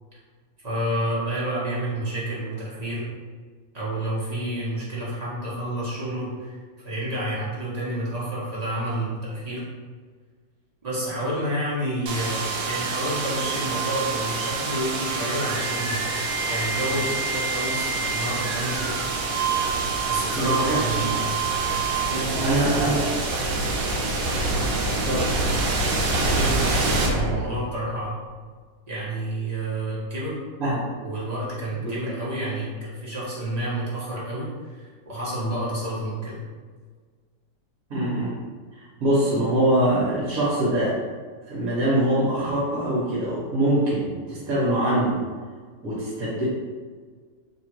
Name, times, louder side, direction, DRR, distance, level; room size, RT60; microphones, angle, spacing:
voice 1, 0.6-3.1 3.7-6.6 6.8-9.6 10.8-19.0 20.1-21.3 22.1-23.2 26.3-28.2 28.9-30.4 31.0-36.4, right 1 dB, 30° right, -8 dB, 0.8 m, -29 dB
sound 1, 12.1-27.9, right 3 dB, 75° right, 1.3 m, -26 dB
voice 2, 20.3-21.3 22.4-23.0 25.1-25.3 30.6-30.9 31.8-31.9 37.9-38.3 38.7-41.0 41.5-45.2 45.8-46.5, right 1 dB, 55° right, -8 dB, 1.3 m, -23 dB
3.2 x 2.4 x 4.4 m, 1.6 s
omnidirectional pair, 2.0 m